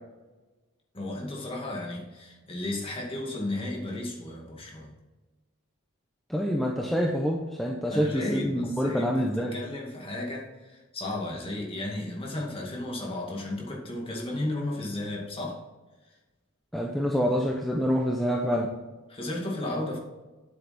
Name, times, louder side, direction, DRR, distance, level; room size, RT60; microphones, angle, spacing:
voice 1, 0.9-4.9 7.9-15.6 19.1-20.0, left 1 dB, 25° left, -1 dB, 2.1 m, -34 dB
voice 2, 6.3-9.6 16.7-18.7, equal, ahead, -1 dB, 0.9 m, -26 dB
9.8 x 8.0 x 4.3 m, 1.2 s
head